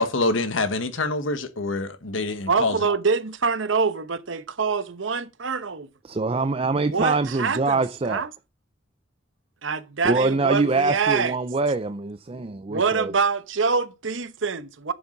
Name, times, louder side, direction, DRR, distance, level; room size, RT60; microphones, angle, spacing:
voice 1, 0.0-2.8, left 2 dB, 80° left, 1.3 m, -25 dB
voice 2, 2.5-5.9 6.9-7.8 8.1-8.3 9.6-11.4 12.7-14.9, right 5 dB, 70° right, 1.0 m, -25 dB
voice 3, 6.0-8.3 10.0-13.1, right 3 dB, 30° right, 0.5 m, -24 dB
10.5 x 7.1 x 3.9 m
head